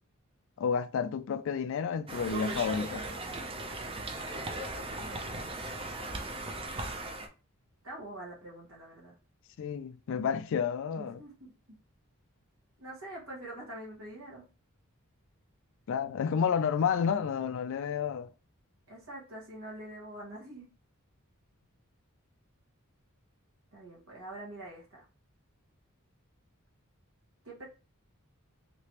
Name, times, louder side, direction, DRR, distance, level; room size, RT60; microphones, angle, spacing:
voice 1, 0.6-3.1 9.6-11.2 15.9-18.3, left 7 dB, 60° left, 0.3 m, -30 dB
Conversation, 2.1-7.3, right 2 dB, 25° right, 0.5 m, -37 dB
voice 2, 5.0-5.8 7.8-9.1 11.0-11.3 12.8-14.4 18.9-20.7 23.7-25.0 27.4-27.7, right 1 dB, 70° right, 1.3 m, -45 dB
3.2 x 2.9 x 2.9 m
head